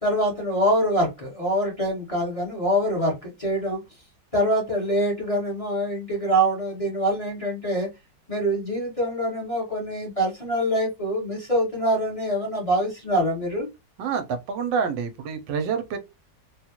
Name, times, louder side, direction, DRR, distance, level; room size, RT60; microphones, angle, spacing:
voice 1, 0.0-3.8 4.3-7.9 8.3-13.7, right 1 dB, 20° left, 1.2 m, -24 dB
voice 2, 14.0-16.0, right 6 dB, 80° right, 1.3 m, -27 dB
3.6 x 2.3 x 2.8 m
omnidirectional pair, 2.0 m